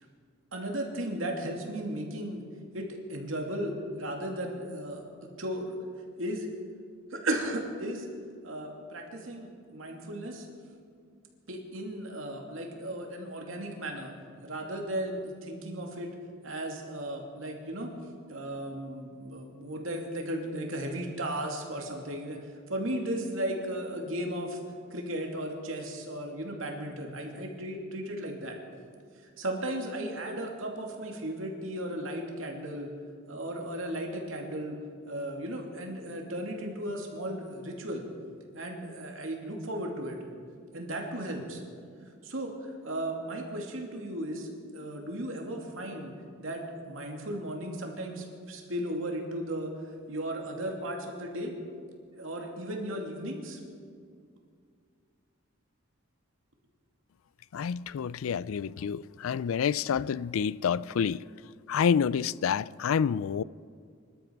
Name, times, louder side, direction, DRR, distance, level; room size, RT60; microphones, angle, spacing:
voice 1, 0.5-2.4 2.7-5.1 5.4-5.7 6.2-6.5 7.1-8.1 8.4-10.5 11.5-14.1 14.4-16.1 16.4-17.9 18.3-22.4 22.7-24.6 24.9-28.6 29.2-32.9 33.3-34.8 35.1-38.0 38.5-40.2 40.7-41.6 42.2-46.1 46.4-49.7 50.1-51.5 52.1-53.6, right 1 dB, 75° right, 2.7 m, -35 dB
voice 2, 57.5-61.2 61.7-63.4, left 7 dB, 90° left, 0.4 m, -28 dB
24.5 x 12.5 x 4.7 m
head